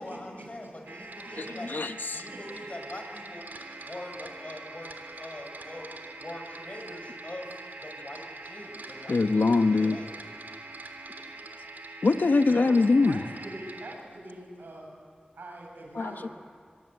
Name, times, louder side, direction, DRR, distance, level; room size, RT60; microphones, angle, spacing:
voice 1, 0.0-1.7 2.1-3.5 3.8-4.9 5.2-9.2 9.7-10.1, left 1 dB, 45° left, 3 dB, 7.0 m, -43 dB
sound 1, 0.9-14.0, right 2 dB, 70° right, 3.3 m, -44 dB
voice 2, 1.2-1.7 2.3-2.4 12.4-14.9 15.3-16.3, right 1 dB, 90° right, 0 dB, 7.8 m, -43 dB
voice 3, 9.1-10.0 12.0-13.2 16.0-16.1, left 3 dB, 75° left, 9 dB, 1.1 m, -22 dB
25.5 x 22.0 x 8.1 m, 2.2 s
cardioid pair, 45°, 3 cm